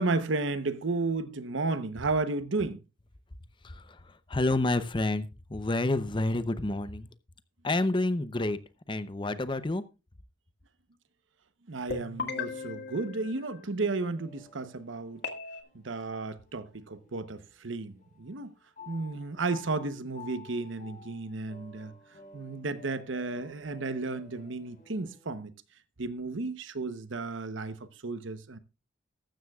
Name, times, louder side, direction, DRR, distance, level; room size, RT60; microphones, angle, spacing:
voice 1, 0.0-2.8 11.7-15.2 15.7-18.5 18.9-21.9 22.3-25.5 26.0-27.8 28.0-28.6, right 3 dB, 75° right, 1.0 m, -33 dB
voice 2, 3.6-7.1 7.6-8.6 8.9-9.8, left 2 dB, 25° left, 0.7 m, -29 dB
sound 1, 11.9-14.0 15.2-15.6, left 5 dB, 60° left, 1.9 m, -38 dB
sound 2, 14.1-17.7 18.0-25.3, left 4 dB, 45° left, 5.0 m, -53 dB
14.5 x 12.5 x 2.4 m
head